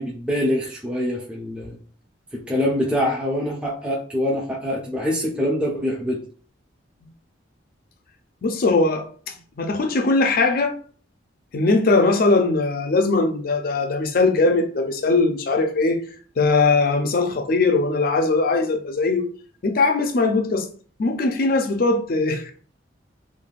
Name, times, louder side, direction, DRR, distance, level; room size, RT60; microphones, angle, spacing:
voice 1, 0.0-1.8 2.3-6.2, equal, 5° right, 0.4 m, -24 dB
voice 2, 8.4-10.8 11.5-16.0 16.4-19.3 19.6-20.7 21.0-22.5, left 3 dB, 50° left, 0.4 m, -20 dB
3.2 x 2.2 x 2.4 m
head